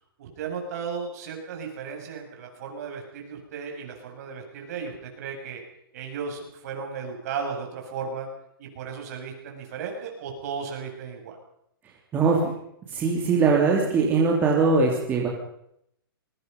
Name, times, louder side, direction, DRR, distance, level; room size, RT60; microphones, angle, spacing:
voice 1, 0.2-5.6 5.9-8.3 8.6-11.4, right 6 dB, 45° right, 2 dB, 7.5 m, -35 dB
voice 2, 12.1-12.5 12.9-15.3, right 4 dB, 15° right, -2 dB, 3.3 m, -21 dB
27.5 x 22.5 x 5.5 m, 0.73 s
hypercardioid pair, 165°, 12 cm